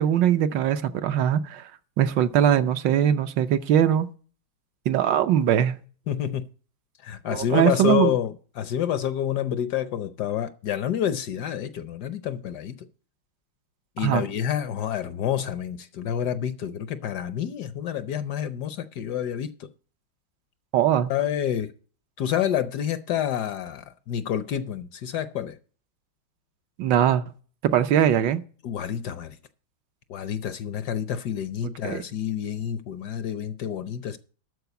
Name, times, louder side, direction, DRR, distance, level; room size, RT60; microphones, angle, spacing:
voice 1, 0.0-1.7 2.0-4.1 4.9-5.8 7.3-8.1 14.0-14.2 20.7-21.1 26.8-27.2 27.6-28.4 31.8-32.0, right 10 dB, 70° right, 1.3 m, -21 dB
voice 2, 6.1-6.5 7.0-12.7 14.0-19.7 21.1-21.7 22.2-25.6 28.6-29.4 30.1-34.2, left 9 dB, 70° left, 1.1 m, -28 dB
13.0 x 4.7 x 8.1 m
omnidirectional pair, 2.1 m